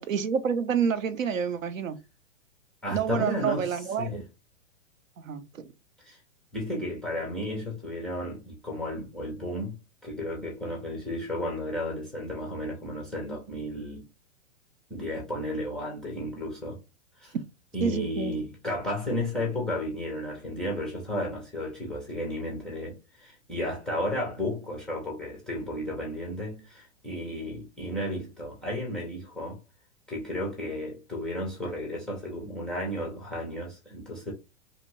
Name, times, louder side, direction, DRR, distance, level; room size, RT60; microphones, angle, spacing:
voice 1, 0.0-2.0 2.9-4.2 5.2-5.6 17.8-18.4, right 7 dB, 80° right, 0.6 m, -28 dB
voice 2, 2.8-4.2 6.0-6.2 6.5-9.8 10.0-14.0 14.9-16.8 17.2-17.3 17.7-29.6 30.1-34.3, left 1 dB, ahead, 0.3 m, -33 dB
2.7 x 2.4 x 3.0 m
hypercardioid pair, 115°, 39 cm